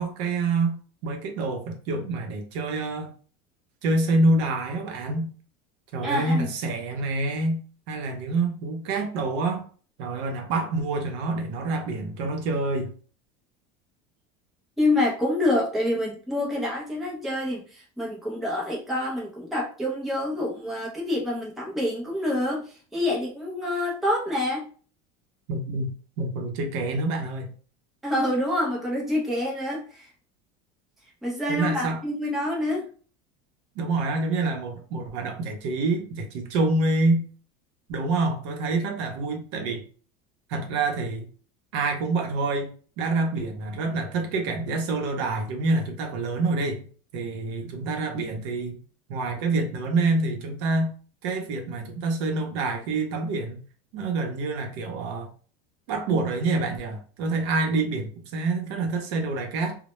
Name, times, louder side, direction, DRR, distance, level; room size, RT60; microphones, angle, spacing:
voice 1, 0.0-3.1 3.8-5.3 5.9-7.6 7.9-9.7 10.0-12.9 25.5-27.5 31.5-32.0 33.8-37.2 37.9-39.8 40.5-41.3 41.7-42.7 43.0-46.9 47.1-48.8 49.1-50.9 51.2-53.6 53.9-55.3 55.9-59.8, right 3 dB, 65° right, 4 dB, 0.6 m, -27 dB
voice 2, 6.0-6.5 14.8-22.6 22.9-24.7 28.0-30.1 31.2-32.9, left 1 dB, ahead, -4 dB, 0.4 m, -27 dB
2.1 x 2.0 x 2.9 m, 0.41 s
cardioid pair, 175°, 17 cm